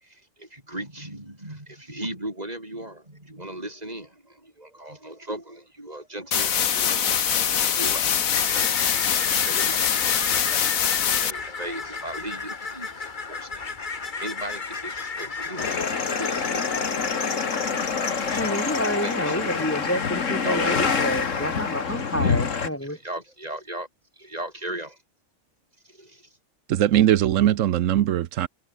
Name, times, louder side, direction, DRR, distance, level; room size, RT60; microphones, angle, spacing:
voice 1, 0.1-7.2 7.7-8.0 8.4-10.6 11.2-13.7 14.2-16.4 16.8-17.2 18.0-18.4 19.0-19.6 19.9-20.0 20.4-20.9 22.2-22.4 22.9-23.9 24.2-25.0 25.9-26.2, right 1 dB, 30° right, 6.3 m, -37 dB
sound 1, 6.3-11.3, left 8 dB, 80° left, 1.7 m, -23 dB
sound 2, 8.3-18.4, left 4 dB, 35° left, 1.5 m, -34 dB
sound 3, 15.6-22.7, left 5 dB, 65° left, 2.1 m, -26 dB
voice 2, 18.3-23.0, equal, 10° left, 3.0 m, -29 dB
voice 3, 26.7-28.5, right 12 dB, 70° right, 1.1 m, -20 dB
omnidirectional pair, 1.4 m